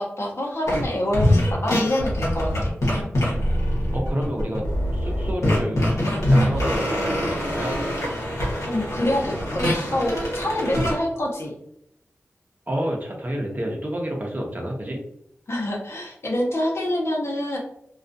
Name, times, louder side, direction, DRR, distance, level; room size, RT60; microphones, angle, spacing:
voice 1, 0.0-2.7 8.6-11.5 15.5-17.6, left 1 dB, 60° left, -2 dB, 0.8 m, -26 dB
sound 1, 0.7-0.8 1.1-10.9, left 1 dB, 85° left, 0.9 m, -23 dB
voice 2, 3.9-4.6 4.9-5.9 6.3-7.7 10.6-10.8 12.7-15.0, equal, 35° right, 0 dB, 0.7 m, -29 dB
2.3 x 2.3 x 2.6 m, 0.73 s
cardioid pair, 40°, 5 cm